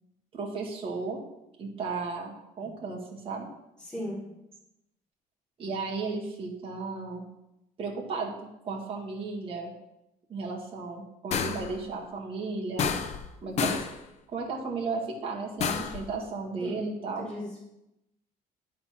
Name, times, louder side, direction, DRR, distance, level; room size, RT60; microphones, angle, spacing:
voice 1, 0.3-1.2 1.6-3.5 5.6-7.2 7.8-8.3 8.6-9.7 10.3-12.9 13.4-13.9 14.3-17.3, right 4 dB, 35° right, -2 dB, 1.8 m, -34 dB
voice 2, 3.8-4.3 16.6-16.9 17.2-17.6, left 1 dB, 5° left, -8 dB, 2.9 m, -37 dB
sound 1, 11.3-11.8 12.8-13.3 13.6-14.0 15.6-16.0, left 6 dB, 45° left, 0.7 m, -29 dB
10.0 x 4.3 x 5.8 m, 0.89 s
cardioid pair, 150°, 16 cm